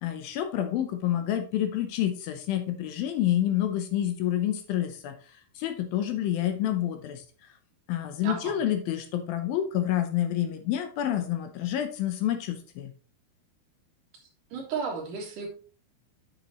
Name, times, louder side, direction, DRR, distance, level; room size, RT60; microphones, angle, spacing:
voice 1, 0.0-5.1 5.6-7.2 7.9-12.9, left 11 dB, 75° left, 7 dB, 2.4 m, -28 dB
voice 2, 8.2-8.6 14.5-15.5, right 5 dB, 60° right, 0 dB, 3.0 m, -33 dB
8.1 x 7.1 x 3.0 m, 0.37 s
omnidirectional pair, 4.5 m